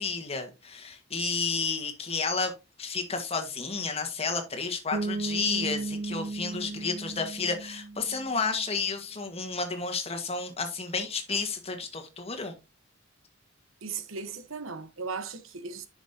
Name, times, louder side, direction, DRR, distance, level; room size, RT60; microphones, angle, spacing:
voice 1, 0.0-2.5 2.8-12.5, left 4 dB, 30° left, 1.5 m, -31 dB
Bass guitar, 4.9-8.6, right 3 dB, 55° right, 1.3 m, -35 dB
voice 2, 13.8-15.9, right 5 dB, 85° right, 1.1 m, -37 dB
10.0 x 6.3 x 2.8 m
head